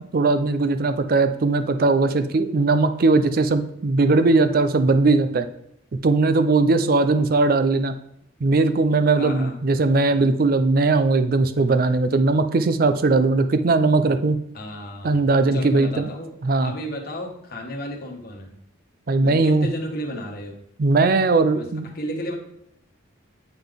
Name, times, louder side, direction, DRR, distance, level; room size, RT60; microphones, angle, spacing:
voice 1, 0.1-5.4 6.0-7.9 8.4-14.4 15.0-16.1 16.4-16.7 19.1-19.7 20.8-21.9, right 3 dB, 45° right, 9 dB, 0.4 m, -19 dB
voice 2, 9.1-9.6 14.5-15.1 15.5-16.3 16.6-18.6 19.2-20.6 21.5-21.7 21.9-22.3, equal, 45° left, 0 dB, 1.1 m, -33 dB
8.9 x 3.8 x 3.5 m, 0.77 s
head